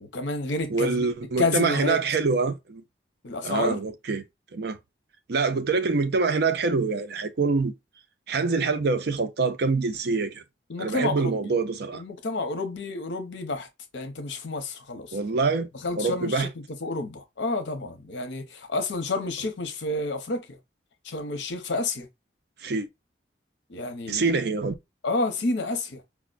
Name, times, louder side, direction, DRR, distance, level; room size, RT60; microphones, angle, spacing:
voice 1, 0.0-1.1 1.4-2.0 3.2-3.8 10.7-11.4 11.9-13.7 13.9-15.2 15.8-20.6 21.0-22.1 23.7-24.3 25.0-26.0, left 2 dB, 75° left, 0.7 m, -29 dB
voice 2, 0.7-2.8 3.4-4.2 4.5-4.8 5.3-7.7 8.3-10.4 10.8-12.0 15.1-15.7 16.0-16.5 22.6-22.9 24.1-24.7, right 4 dB, 60° right, 0.5 m, -25 dB
4.7 x 2.1 x 2.4 m
head